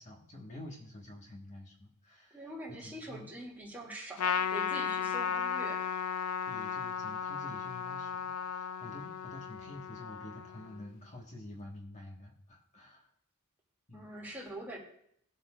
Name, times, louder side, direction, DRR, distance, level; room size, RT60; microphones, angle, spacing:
voice 1, 0.0-2.5 2.8-3.3 6.5-13.1 13.9-14.1, left 1 dB, 35° left, -1 dB, 1.5 m, -49 dB
voice 2, 2.3-5.9 13.9-14.8, right 1 dB, 10° right, -3 dB, 2.4 m, -44 dB
Trumpet, 4.2-10.9, left 7 dB, 80° left, 0.5 m, -35 dB
20.5 x 8.2 x 2.5 m, 0.70 s
head